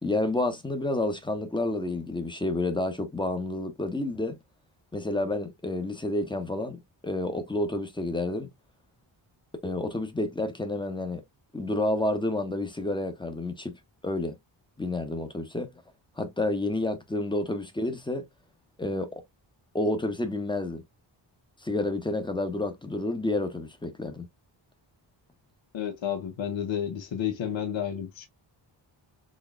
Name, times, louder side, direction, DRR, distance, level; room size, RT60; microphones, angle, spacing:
voice 1, 0.0-4.4 4.9-8.5 9.6-11.2 11.5-14.3 14.8-15.7 16.2-18.2 18.8-19.1 19.7-20.8 21.6-24.3, left 2 dB, 10° left, 0.8 m, -29 dB
voice 2, 25.7-28.3, left 9 dB, 80° left, 0.8 m, -31 dB
4.2 x 3.4 x 2.3 m
wide cardioid pair, 160°, 45 cm